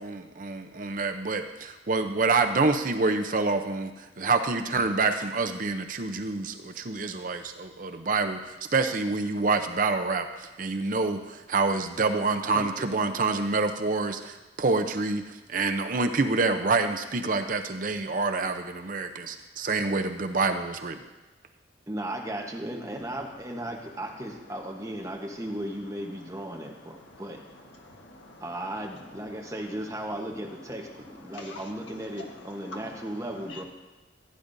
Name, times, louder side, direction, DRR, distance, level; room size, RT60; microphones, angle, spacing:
voice 1, 0.0-21.0, right 3 dB, 45° right, 6 dB, 0.6 m, -27 dB
voice 2, 21.9-27.4 28.4-30.9 31.2-33.6, right 1 dB, 15° right, 1 dB, 1.1 m, -36 dB
voice 3, 26.9-27.2 27.7-28.4 31.3-31.6 32.6-32.9 33.5-33.6, left 2 dB, 80° left, 1 dB, 1.5 m, -45 dB
15.5 x 9.6 x 2.7 m, 1.1 s
head